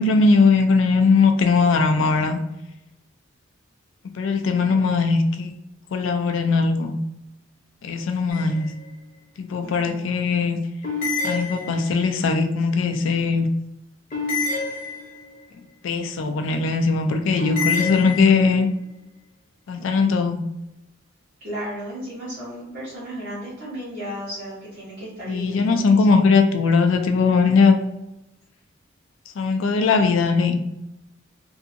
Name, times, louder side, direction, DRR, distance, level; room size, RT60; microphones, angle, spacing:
voice 1, 0.0-2.4 4.1-5.5 5.9-7.0 7.8-8.7 9.4-10.6 11.2-13.5 15.8-18.7 19.7-20.4 25.3-27.8 29.4-30.6, left 4 dB, 75° left, 6 dB, 0.4 m, -19 dB
voice 2, 4.5-4.8 9.6-10.0 19.8-19.9 21.4-26.2, equal, 50° right, -11 dB, 1.0 m, -35 dB
sound 1, 8.3-8.9 10.8-12.1 14.1-15.4 17.4-18.7, left 4 dB, 40° left, 0.7 m, -28 dB
2.7 x 2.5 x 2.5 m, 0.90 s
head